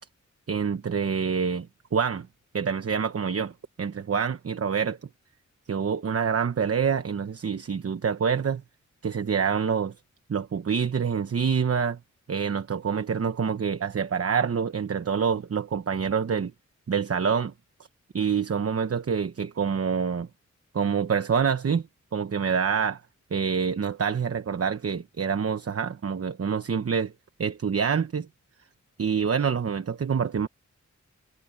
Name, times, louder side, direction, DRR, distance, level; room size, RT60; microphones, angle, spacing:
voice 1, 0.5-2.3 2.5-3.5 3.8-5.0 5.7-8.6 9.0-9.9 10.3-12.0 12.3-16.5 16.9-17.5 18.1-20.3 20.7-21.8 22.1-23.0 23.3-27.1 27.4-28.3 29.0-30.5, right 6 dB, 50° right, 1.0 m, -26 dB
wide cardioid pair, 125°, 30 cm